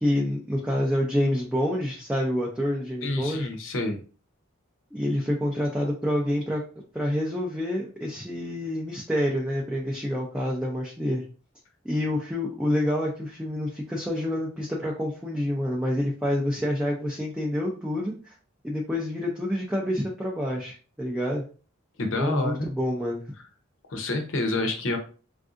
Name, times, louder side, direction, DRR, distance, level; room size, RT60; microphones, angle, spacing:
voice 1, 0.0-3.5 4.9-6.6 6.9-11.2 11.8-18.3 18.6-21.4 22.2-23.2, left 1 dB, 5° right, -3 dB, 0.4 m, -27 dB
voice 2, 3.0-4.0 22.0-22.7 23.9-25.0, left 2 dB, 65° left, 4 dB, 0.7 m, -28 dB
3.4 x 2.6 x 2.5 m, 0.38 s
head